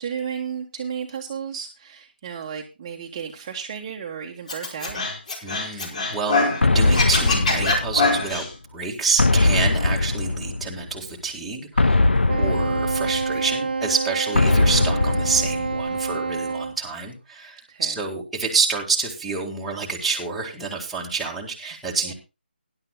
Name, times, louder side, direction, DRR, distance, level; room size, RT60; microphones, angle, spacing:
voice 1, 0.0-5.0 12.1-12.4 17.7-18.0 22.0-22.1, right 7 dB, 25° right, 1 dB, 1.3 m, -33 dB
Scratching (performance technique), 4.5-6.6 6.9-8.5, left 3 dB, 40° left, 4.8 m, -23 dB
voice 2, 5.4-8.5 8.7-12.1 12.4-22.1, right 4 dB, ahead, -5 dB, 1.9 m, -28 dB
sound 1, 6.6-8.4 9.2-10.9 11.8-13.6 14.4-16.1, left 2 dB, 75° left, 0.6 m, -21 dB
Wind instrument woodwind instrument, 12.3-16.8, right 4 dB, 55° right, 1.1 m, -27 dB
19.5 x 11.0 x 2.3 m, 0.28 s
figure-of-eight pair, 155°, 6 cm